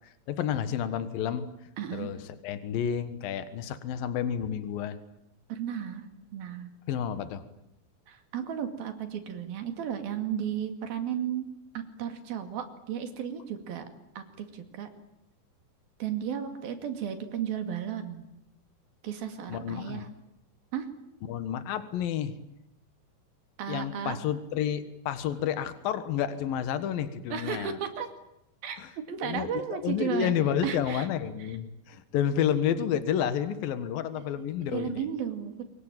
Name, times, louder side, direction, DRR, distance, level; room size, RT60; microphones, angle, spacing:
voice 1, 0.3-1.5 1.9-2.2 2.4-5.0 6.9-7.4 19.5-20.1 21.3-22.3 23.7-27.8 28.8-28.9 29.2-35.1, left 9 dB, 75° left, 11 dB, 3.2 m, -30 dB
voice 2, 1.8-2.1 5.5-6.1 6.3-6.7 8.1-13.9 14.2-14.9 16.0-18.3 19.0-20.1 20.7-20.9 23.6-24.2 27.3-28.1 28.6-28.8 29.1-30.4 30.6-31.1 31.4-31.6 34.2-34.3 34.7-35.6, right 9 dB, 85° right, 7 dB, 4.2 m, -34 dB
26.0 x 23.5 x 9.1 m, 0.81 s
omnidirectional pair, 4.1 m